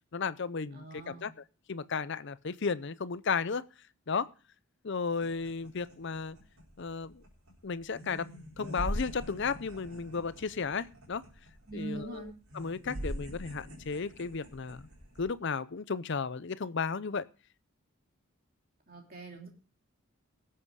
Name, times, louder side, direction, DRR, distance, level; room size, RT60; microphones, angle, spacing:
voice 1, 0.1-1.3 1.7-3.7 4.1-4.3 4.8-6.4 6.8-7.1 7.6-8.3 8.6-11.2 11.7-12.2 12.5-14.9 15.2-17.3, left 5 dB, 50° left, 0.6 m, -34 dB
voice 2, 0.7-1.3 11.7-12.3 18.9-19.5, right 2 dB, 40° right, 3.0 m, -42 dB
sound 1, 5.1-15.3, equal, 75° right, 4.1 m, -43 dB
18.0 x 7.8 x 4.7 m
head